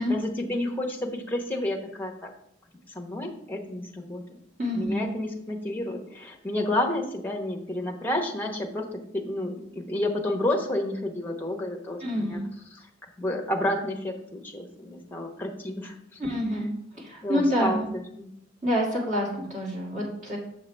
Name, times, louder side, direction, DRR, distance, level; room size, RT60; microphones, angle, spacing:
voice 1, 0.0-2.3 2.9-4.2 4.7-8.8 9.1-12.4 12.7-12.8 13.2-16.0 17.2-18.3, left 1 dB, 10° left, 1 dB, 0.9 m, -30 dB
voice 2, 4.6-5.0 12.0-12.4 16.2-16.7 17.0-17.9 18.6-20.4, equal, 35° right, -3 dB, 2.1 m, -27 dB
6.7 x 6.6 x 3.3 m, 0.73 s
head